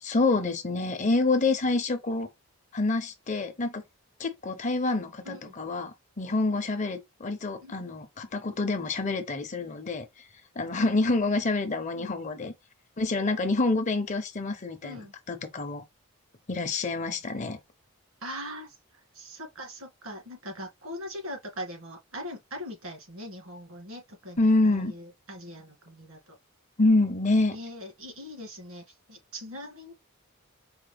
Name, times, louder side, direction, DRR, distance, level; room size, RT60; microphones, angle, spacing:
voice 1, 0.0-2.3 2.7-3.8 4.2-10.2 10.6-12.5 13.0-15.8 16.5-17.6 24.4-24.9 26.8-27.6, left 2 dB, 35° left, 0.6 m, -27 dB
voice 2, 18.2-18.8 19.1-26.4 27.5-28.8 29.1-29.9, equal, 85° right, 2.2 m, -41 dB
4.7 x 2.0 x 3.4 m
head